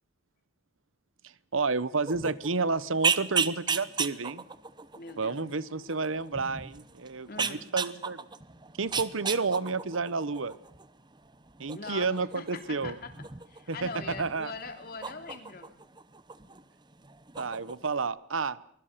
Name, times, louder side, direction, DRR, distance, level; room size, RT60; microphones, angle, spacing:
voice 1, 1.5-4.4 5.2-8.2 8.8-10.5 11.6-13.0 13.7-13.9 14.2-14.5 17.4-18.6, right 4 dB, 90° right, 18 dB, 1.0 m, -30 dB
sound 1, 2.1-16.6 16.9-18.0, right 6 dB, 20° right, 0.9 m, -35 dB
voice 2, 4.9-5.4 7.3-7.7 11.7-15.7, left 3 dB, 50° left, 6 dB, 3.1 m, -42 dB
24.0 x 21.5 x 6.8 m, 0.67 s
head